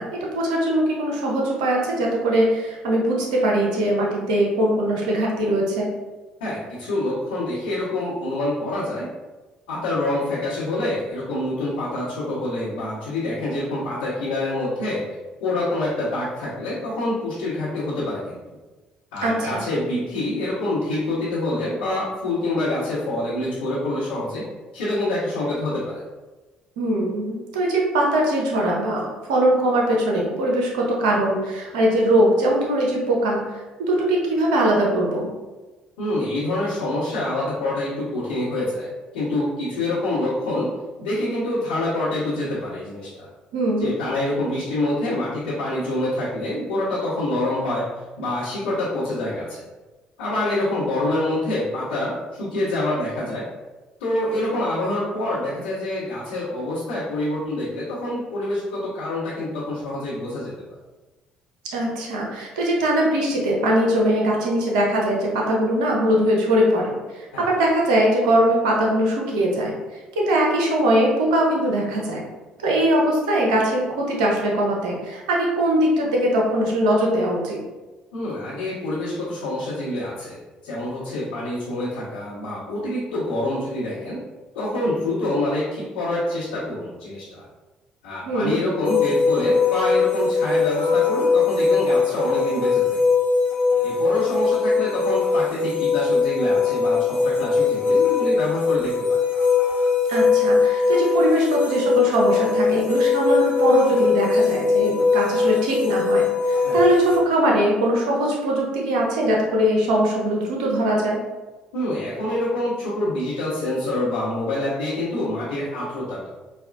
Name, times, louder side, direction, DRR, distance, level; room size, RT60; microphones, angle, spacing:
voice 1, 0.0-5.9 19.2-19.6 26.8-33.4 33.8-35.3 43.5-43.9 61.7-69.7 70.2-72.2 72.6-77.6 88.3-88.6 100.1-111.2, right 1 dB, 70° right, -2 dB, 0.7 m, -21 dB
voice 2, 6.4-9.1 9.7-15.0 15.4-18.4 19.1-24.5 24.7-25.9 36.0-38.9 39.1-40.7 41.0-43.3 43.8-47.8 48.2-49.7 50.2-53.4 54.0-60.5 67.3-67.4 78.1-80.4 80.6-84.2 84.5-87.4 88.0-93.0 93.8-98.9 106.6-106.8 111.7-116.3, left 1 dB, 70° left, -12 dB, 1.0 m, -26 dB
sound 1, 88.8-107.2, left 4 dB, 45° left, 0.8 m, -20 dB
4.1 x 2.3 x 2.5 m, 1.2 s
figure-of-eight pair, 50°, 4 cm